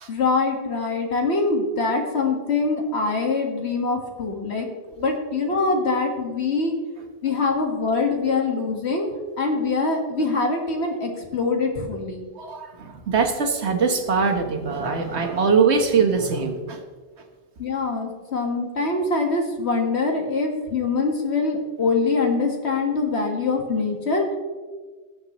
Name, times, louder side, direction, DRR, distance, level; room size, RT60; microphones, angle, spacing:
voice 1, 0.1-4.7 5.0-6.7 7.2-9.1 9.4-12.3 17.6-24.3, left 3 dB, 80° left, 2 dB, 1.9 m, -24 dB
voice 2, 12.4-16.8, right 5 dB, 85° right, 4 dB, 1.5 m, -22 dB
19.0 x 7.9 x 3.0 m, 1.4 s
omnidirectional pair, 1.1 m